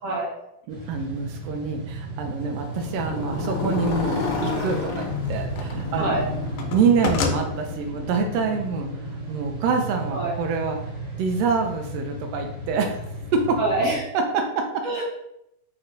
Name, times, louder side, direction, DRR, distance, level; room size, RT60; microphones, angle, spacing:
sound 1, 0.7-14.0, right 2 dB, 45° right, 1.7 m, -35 dB
voice 1, 0.7-6.3 6.7-8.9 9.3-10.8 11.2-13.0 13.3-13.6 14.1-14.8, right 5 dB, 85° right, 4 dB, 1.4 m, -26 dB
Motorcycle, 2.5-10.6, left 4 dB, 60° left, 1.4 m, -31 dB
sound 2, 4.9-5.9 6.2-7.4, left 5 dB, 80° left, 1.8 m, -28 dB
voice 2, 13.6-14.0 14.8-15.0, right 2 dB, 65° right, -4 dB, 1.6 m, -25 dB
4.4 x 4.1 x 2.6 m, 0.82 s
omnidirectional pair, 3.3 m